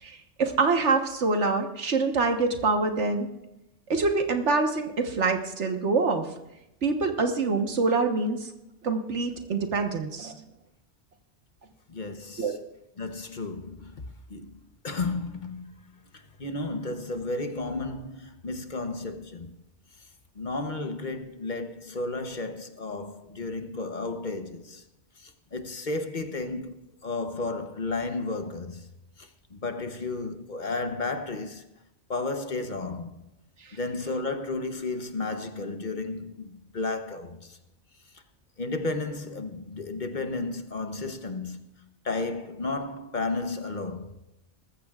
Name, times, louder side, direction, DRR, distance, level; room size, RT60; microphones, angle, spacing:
voice 1, 0.0-3.3 3.9-6.3 6.8-8.5 8.8-10.4 12.4-12.5, right 3 dB, 90° right, 1.6 m, -25 dB
voice 2, 11.9-12.6 13.0-14.0 14.3-14.5 14.8-19.5 20.4-24.8 25.2-26.8 27.0-28.9 29.2-31.7 32.1-33.1 33.7-37.6 38.6-44.1, left 3 dB, 45° left, 1.1 m, -33 dB
20.0 x 14.5 x 2.4 m
omnidirectional pair, 1.2 m